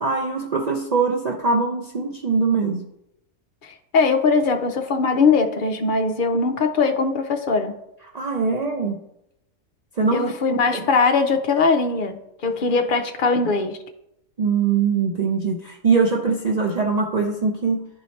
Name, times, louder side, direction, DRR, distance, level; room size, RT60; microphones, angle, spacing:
voice 1, 0.0-2.9 8.1-9.0 10.0-10.3 10.7-10.9 14.4-17.9, right 4 dB, 80° right, 1 dB, 0.3 m, -22 dB
voice 2, 3.6-7.7 10.1-12.2 12.4-13.8, left 4 dB, 50° left, 6 dB, 0.6 m, -20 dB
11.0 x 4.1 x 3.2 m, 0.82 s
omnidirectional pair, 1.5 m